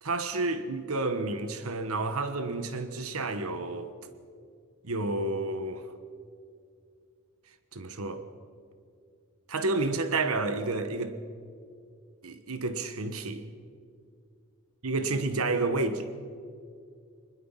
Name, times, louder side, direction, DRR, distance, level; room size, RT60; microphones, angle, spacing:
voice 1, 0.0-3.9 4.8-5.9 7.7-8.2 9.5-11.2 12.2-13.4 14.8-16.1, right 3 dB, 80° right, 9 dB, 1.3 m, -30 dB
22.0 x 20.5 x 5.8 m, 2.3 s
head